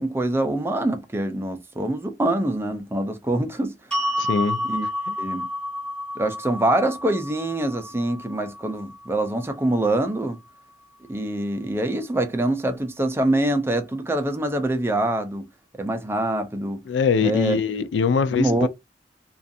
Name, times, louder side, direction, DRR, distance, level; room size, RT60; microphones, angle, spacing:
voice 1, 0.0-3.7 4.6-4.9 5.2-5.5 6.2-10.4 11.1-15.5 15.8-16.8 17.2-17.6 18.4-18.7, right 1 dB, 15° right, 0.4 m, -24 dB
sound 1, 3.9-10.1, left 1 dB, 5° left, 1.1 m, -31 dB
voice 2, 4.2-4.6 5.1-5.2 16.9-18.7, left 5 dB, 85° left, 0.3 m, -22 dB
2.4 x 2.3 x 2.6 m
head